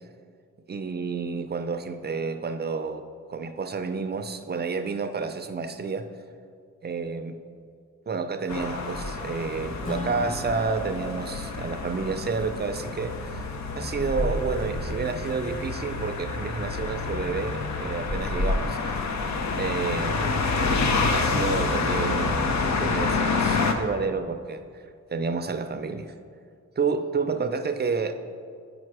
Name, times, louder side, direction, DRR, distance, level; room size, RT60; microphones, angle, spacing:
voice 1, 0.7-6.1 6.8-7.4 8.1-13.5 13.7-19.1 19.6-20.2 21.1-22.3 22.6-24.6 25.1-26.1 26.8-28.1, right 4 dB, 35° right, 8 dB, 0.5 m, -30 dB
sound 1, 8.5-23.7, left 3 dB, 65° left, 0.7 m, -28 dB
Acoustic guitar / Strum, 9.8-13.4, left 1 dB, 25° left, 1.0 m, -40 dB
8.8 x 5.1 x 4.7 m, 2.2 s
wide cardioid pair, 105°, 30 cm